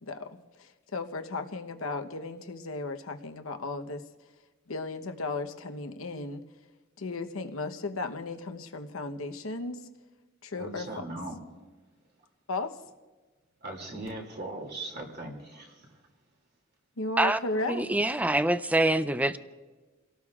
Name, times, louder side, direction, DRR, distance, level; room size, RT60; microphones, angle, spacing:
voice 1, 0.0-4.0 4.7-6.4 7.0-9.8 10.4-11.0 12.5-12.8 17.0-17.9, left 2 dB, 70° left, 7 dB, 1.0 m, -35 dB
voice 2, 10.6-11.4 13.6-15.9, right 2 dB, 50° right, 1 dB, 2.7 m, -39 dB
voice 3, 17.7-19.4, right 1 dB, 5° right, 12 dB, 0.4 m, -25 dB
29.5 x 18.0 x 2.4 m, 1.3 s
head